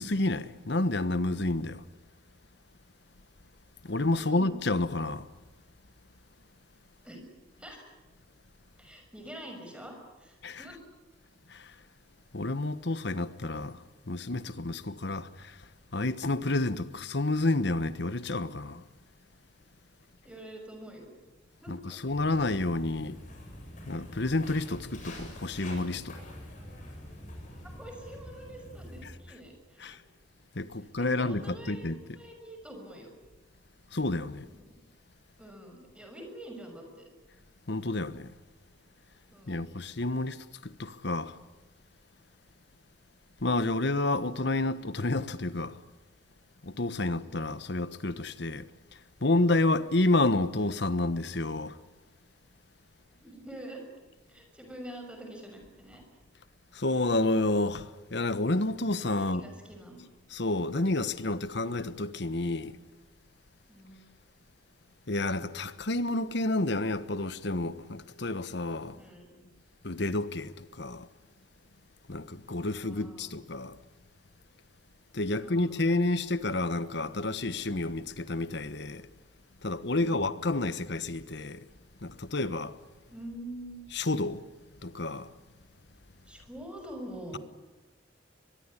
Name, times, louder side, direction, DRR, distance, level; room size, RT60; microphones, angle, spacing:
voice 1, 0.0-1.8 3.8-5.3 10.4-10.7 11.5-11.7 12.3-15.6 15.9-18.8 21.7-23.2 23.9-26.2 29.8-30.0 30.5-32.0 33.9-34.5 37.7-38.3 39.5-41.4 43.4-45.8 46.6-48.7 49.2-51.8 56.7-59.4 60.3-62.8 65.1-69.0 69.8-71.1 72.1-73.8 75.1-79.1 79.6-81.6 82.0-82.8 83.9-84.4 84.8-85.3, left 2 dB, 60° left, 1.2 m, -30 dB
voice 2, 4.1-4.5 7.0-7.3 7.6-7.8 8.8-10.8 20.2-21.1 21.6-22.0 27.6-30.0 31.0-31.9 32.2-33.1 34.5-34.7 35.4-37.1 39.3-39.7 53.1-53.8 54.3-56.0 59.1-60.0 63.7-64.0 68.9-69.5 72.6-73.3 75.3-76.0 80.0-80.3 83.1-83.8 86.2-87.4, right 1 dB, 5° right, 6.2 m, -46 dB
Walk footsteps, 22.1-29.1, left 1 dB, 40° left, 7.8 m, -45 dB
23.5 x 22.0 x 9.9 m
head